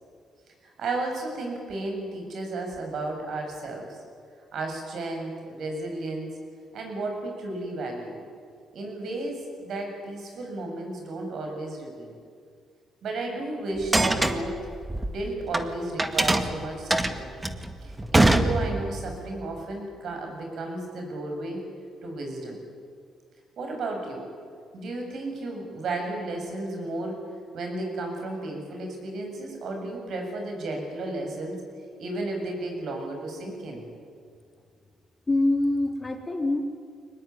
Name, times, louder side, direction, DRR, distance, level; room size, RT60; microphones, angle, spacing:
voice 1, 0.6-4.0 4.5-6.3 6.7-8.2 8.7-12.1 13.0-14.6 15.1-17.3 17.8-21.6 22.0-22.6 23.6-24.3 24.7-27.2 27.5-31.6 32.0-33.8, right 2 dB, 65° right, 3 dB, 7.6 m, -33 dB
sound 1, 13.8-15.6 16.0-19.1, right 2 dB, 15° right, 1.9 m, -23 dB
voice 2, 35.3-36.6, left 2 dB, 25° left, 3 dB, 4.0 m, -24 dB
24.0 x 20.0 x 9.8 m, 2.2 s
cardioid pair, 90°, 0 cm